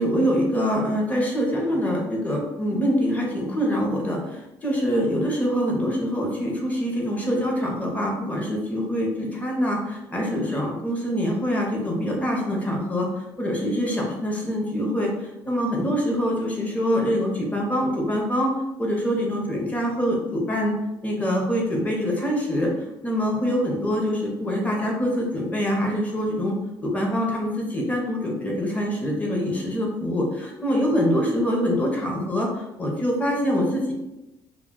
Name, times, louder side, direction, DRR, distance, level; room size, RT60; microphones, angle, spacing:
voice 1, 0.0-13.1 13.4-18.5 18.8-20.7 21.0-22.7 23.0-26.6 26.8-33.9, equal, 15° left, -1 dB, 0.7 m, -24 dB
2.2 x 2.2 x 3.6 m, 0.97 s
cardioid pair, 140°, 9 cm